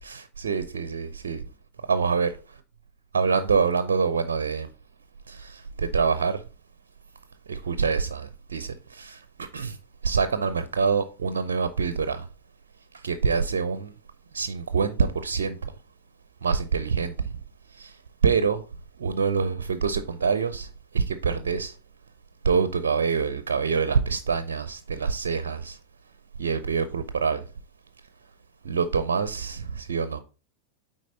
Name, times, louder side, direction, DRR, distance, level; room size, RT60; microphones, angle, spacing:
voice 1, 0.0-1.4 1.9-2.3 3.1-4.7 5.3-6.4 7.5-9.8 10.0-12.3 12.9-13.9 14.3-15.7 16.4-17.4 17.7-18.6 19.0-21.8 22.4-25.8 26.4-27.4 28.6-30.2, right 5 dB, 65° right, 0.5 m, -26 dB
9.2 x 3.9 x 3.9 m
figure-of-eight pair, 90°, 0 cm